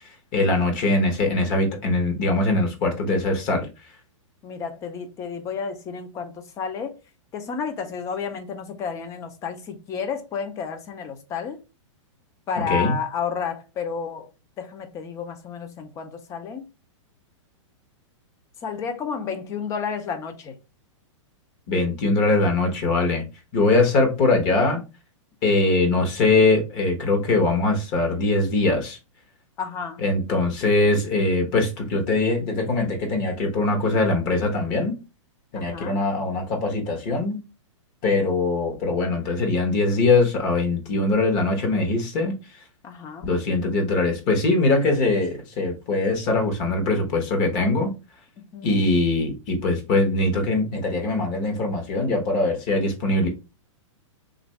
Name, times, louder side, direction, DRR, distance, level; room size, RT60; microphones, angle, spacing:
voice 1, 0.3-3.7 12.7-12.9 21.7-23.2 23.5-24.8 25.4-29.0 30.0-35.0 35.5-37.4 38.0-42.3 43.2-47.9 48.6-53.3, left 2 dB, 35° left, 1.0 m, -22 dB
voice 2, 4.4-7.0 7.3-11.6 12.5-14.3 14.6-16.6 18.6-20.5 29.6-30.0 35.5-36.0 42.8-43.3 48.4-48.8, left 6 dB, 20° left, 0.5 m, -31 dB
3.4 x 2.5 x 3.2 m
hypercardioid pair, 155°, 17 cm